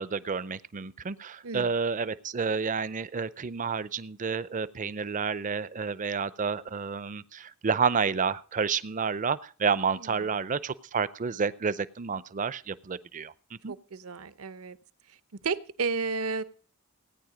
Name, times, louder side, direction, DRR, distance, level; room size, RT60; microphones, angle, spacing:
voice 1, 0.0-13.3 13.6-13.7, right 5 dB, 35° right, 17 dB, 0.5 m, -30 dB
voice 2, 10.0-10.3 13.7-14.8 15.1-15.2 15.4-16.4, right 4 dB, 70° right, 14 dB, 0.8 m, -33 dB
17.0 x 9.6 x 5.0 m, 0.43 s
head